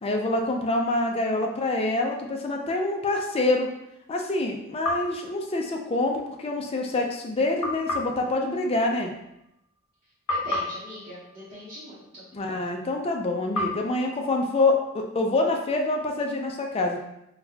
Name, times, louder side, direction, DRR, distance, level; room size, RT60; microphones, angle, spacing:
voice 1, 0.0-3.7 4.1-9.1 12.3-17.0, left 2 dB, 25° left, 2 dB, 0.4 m, -26 dB
sound 1, 4.8-6.2 7.6-9.9 10.3-12.6 13.5-15.4, left 2 dB, 80° left, 0.8 m, -34 dB
voice 2, 10.3-12.2, equal, 30° right, -11 dB, 0.8 m, -40 dB
3.9 x 2.2 x 2.7 m, 0.83 s
head